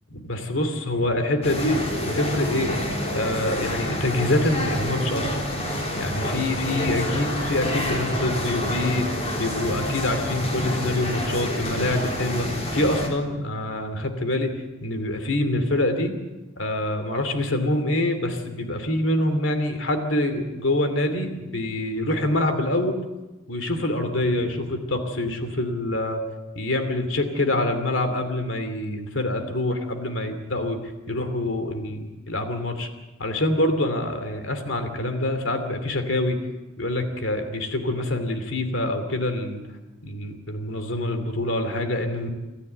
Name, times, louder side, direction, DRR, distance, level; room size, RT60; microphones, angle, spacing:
voice 1, 0.1-1.8 2.1-2.7 3.1-5.4 6.0-9.1 9.4-14.5 14.8-16.1 16.6-23.0 23.5-26.2 26.5-32.9 33.2-36.4 36.8-39.6 40.0-42.3, left 1 dB, 70° left, 7 dB, 2.8 m, -25 dB
sound 1, 1.4-13.1, left 1 dB, 30° left, 3.7 m, -28 dB
26.5 x 13.5 x 8.1 m, 1.1 s
head